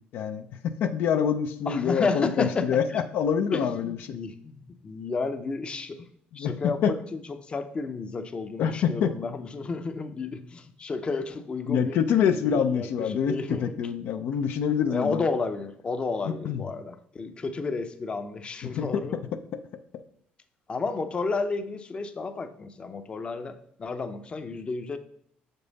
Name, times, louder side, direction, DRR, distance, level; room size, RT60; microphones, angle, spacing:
voice 1, 0.1-2.8 3.1-4.2 6.3-6.5 6.8-6.9 8.6-9.1 11.7-13.3 13.6-15.2 16.3-16.6 18.6-19.0, left 7 dB, 70° left, 8 dB, 0.5 m, -26 dB
voice 2, 1.7-3.0 3.5-6.1 6.3-12.0 12.4-13.7 14.9-19.2 20.7-25.0, left 4 dB, 30° left, 8 dB, 0.6 m, -32 dB
6.7 x 5.4 x 4.0 m, 0.64 s
cardioid pair, 110°, 4 cm